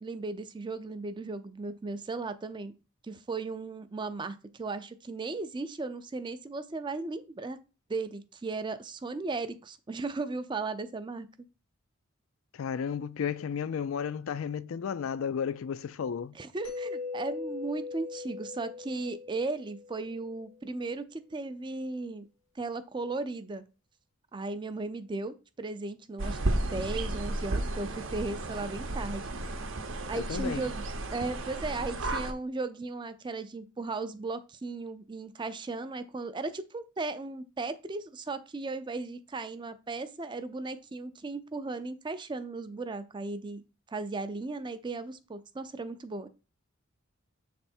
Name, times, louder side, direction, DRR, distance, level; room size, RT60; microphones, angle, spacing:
voice 1, 0.0-2.7 3.0-7.6 7.9-11.3 16.3-22.3 22.6-23.6 24.3-29.3 30.1-30.8 31.1-43.6 43.9-46.3, right 3 dB, 20° right, 0.4 m, -36 dB
voice 2, 12.5-16.4 30.1-30.7, left 7 dB, 70° left, 0.4 m, -33 dB
Mallet percussion, 16.6-20.4, left 4 dB, 85° left, 1.5 m, -40 dB
sound 1, 26.2-32.3, right 2 dB, 60° right, 0.7 m, -33 dB
7.0 x 3.4 x 4.3 m
head